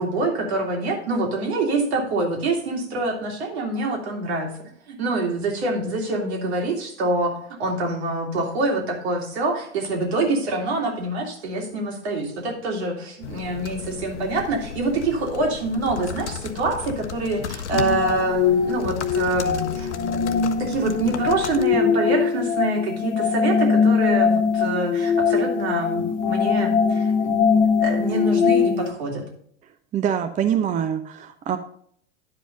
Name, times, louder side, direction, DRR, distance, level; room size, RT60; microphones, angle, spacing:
voice 1, 0.0-4.5 4.9-19.9 20.6-27.4 27.8-29.2, right 2 dB, 65° right, 1 dB, 2.5 m, -25 dB
sound 1, 13.2-21.7, left 8 dB, 75° left, 0.8 m, -34 dB
sound 2, 17.7-28.9, left 6 dB, 35° left, 1.2 m, -22 dB
voice 2, 29.9-31.6, right 9 dB, 20° right, 8 dB, 0.6 m, -24 dB
10.5 x 5.1 x 5.1 m, 0.64 s
figure-of-eight pair, 85°, 35 cm